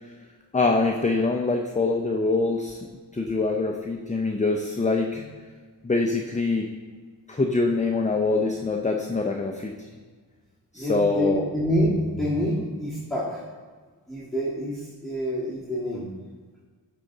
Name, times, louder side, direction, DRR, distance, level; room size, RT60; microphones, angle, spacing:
voice 1, 0.5-2.9 3.1-5.2 5.8-6.7 7.3-9.9 10.7-11.4, left 3 dB, 15° left, 2 dB, 0.5 m, -24 dB
voice 2, 10.7-13.4 14.1-16.1, equal, ahead, -9 dB, 1.7 m, -27 dB
9.7 x 3.8 x 3.9 m, 1.5 s
wide cardioid pair, 60°, 44 cm